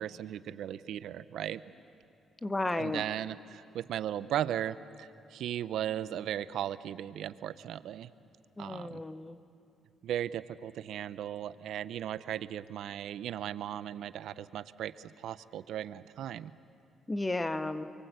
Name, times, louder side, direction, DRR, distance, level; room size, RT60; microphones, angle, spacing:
voice 1, 0.0-1.6 2.8-8.1 8.6-9.0 10.0-16.5, right 11 dB, 75° right, 15 dB, 0.7 m, -37 dB
voice 2, 2.4-3.0 8.6-9.4 17.1-17.9, left 2 dB, 15° left, 10 dB, 1.2 m, -33 dB
28.5 x 23.5 x 8.1 m, 2.7 s
cardioid pair, 90°, 0 cm